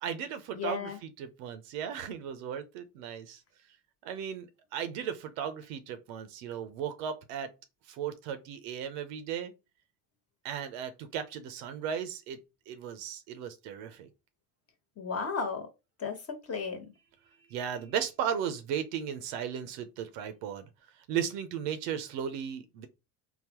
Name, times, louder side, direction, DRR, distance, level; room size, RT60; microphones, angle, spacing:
voice 1, 0.0-0.9 1.2-3.4 4.0-7.5 7.9-9.5 10.4-12.4 12.7-14.1 17.5-20.7 20.9-22.9, right 8 dB, 80° right, 0.7 m, -36 dB
voice 2, 0.5-1.0 15.0-15.7 16.0-16.9, left 5 dB, 35° left, 1.1 m, -34 dB
3.8 x 2.1 x 2.9 m
supercardioid pair, 80°, 42 cm